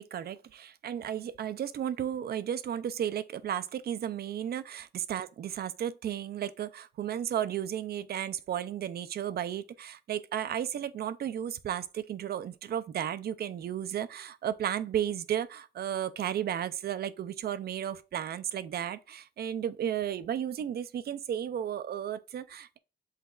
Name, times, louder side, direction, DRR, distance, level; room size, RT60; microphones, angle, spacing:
voice 1, 0.0-22.8, right 10 dB, 60° right, 0.4 m, -34 dB
5.7 x 4.0 x 2.4 m
wide cardioid pair, 150°, 19 cm